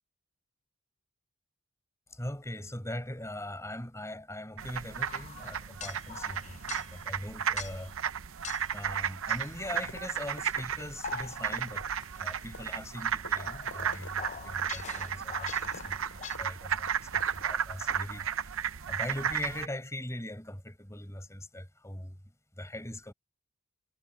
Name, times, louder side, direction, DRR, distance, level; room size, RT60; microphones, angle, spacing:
voice 1, 2.1-7.9 8.7-11.9 12.2-18.5 18.9-22.2 22.6-23.1, left 1 dB, 15° left, 5.2 m, -41 dB
sound 1, 4.6-19.7, right 8 dB, 65° right, 0.7 m, -34 dB
sound 2, 5.1-7.1 7.6-7.9 8.4-8.8 9.3-10.1 10.8-11.7 12.0-16.4, left 7 dB, 35° left, 0.6 m, -45 dB
sound 3, 9.7-10.1 10.4-17.6 17.9-18.0, left 3 dB, 70° left, 4.9 m, -49 dB
head